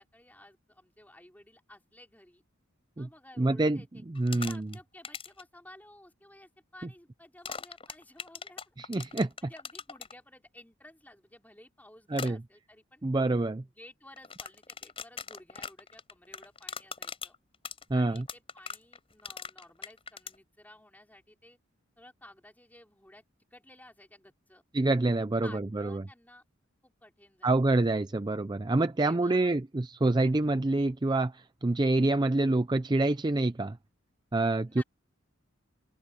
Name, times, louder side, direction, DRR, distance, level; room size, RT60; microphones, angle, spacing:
voice 1, 0.0-2.4 3.0-4.0 4.4-8.7 9.0-13.1 13.6-17.4 17.9-21.6 22.0-23.2 23.5-24.6 25.4-26.4 26.8-27.8 28.8-29.5 34.7-34.8, left 1 dB, 10° left, 5.4 m, -54 dB
voice 2, 3.4-3.8 4.1-4.7 8.8-9.3 12.1-12.4 13.0-13.6 17.9-18.2 24.7-26.0 27.4-33.8 34.3-34.8, right 2 dB, 20° right, 0.5 m, -27 dB
sound 1, 4.1-4.8 5.0-5.4 7.4-10.1 12.1-12.3 14.2-20.4, left 6 dB, 30° left, 4.3 m, -40 dB
open air
head